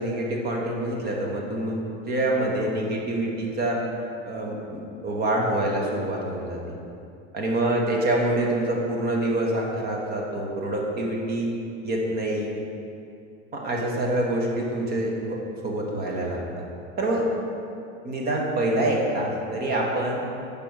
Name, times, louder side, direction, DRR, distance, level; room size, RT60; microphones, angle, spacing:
voice 1, 0.0-3.8 4.2-6.8 7.3-11.5 11.8-12.5 13.5-16.6 17.0-17.3 18.0-20.2, right 1 dB, 30° right, -1 dB, 1.2 m, -26 dB
6.9 x 5.3 x 4.6 m, 2.6 s
supercardioid pair, 145°, 32 cm